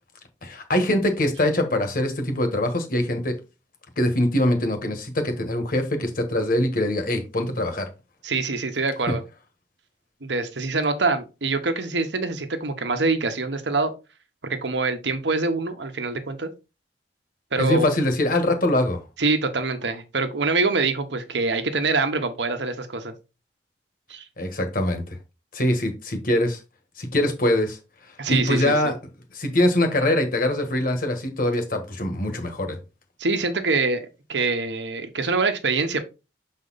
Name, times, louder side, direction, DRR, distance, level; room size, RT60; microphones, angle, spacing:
voice 1, 0.4-3.3 4.0-7.9 17.6-19.0 24.4-25.0 25.5-26.6 27.0-27.8 28.3-28.9 29.3-32.8, left 1 dB, 50° left, 1.4 m, -23 dB
voice 2, 8.2-9.2 10.2-13.9 14.4-16.5 17.5-17.9 19.2-23.1 24.1-24.2 28.2-28.9 33.2-36.0, right 3 dB, 80° right, 1.0 m, -25 dB
6.6 x 4.1 x 4.0 m
head